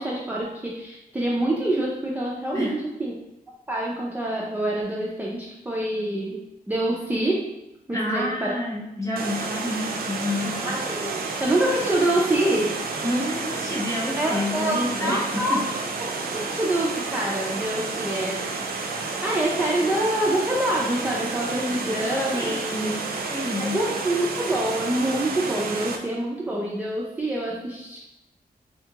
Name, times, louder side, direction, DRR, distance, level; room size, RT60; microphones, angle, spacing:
voice 1, 0.0-3.1 3.7-6.4 6.7-7.5 7.9-8.5 10.6-12.8 14.2-15.6 16.3-18.4 19.2-22.9 23.6-28.0, right 1 dB, 10° right, -5 dB, 0.4 m, -26 dB
voice 2, 7.9-10.7 13.0-15.6 22.3-22.9 23.3-23.8, left 1 dB, 20° left, -4 dB, 0.9 m, -29 dB
Water, 9.2-26.0, right 3 dB, 75° right, 0.4 m, -30 dB
3.7 x 2.3 x 2.7 m, 0.92 s
wide cardioid pair, 115°, 16 cm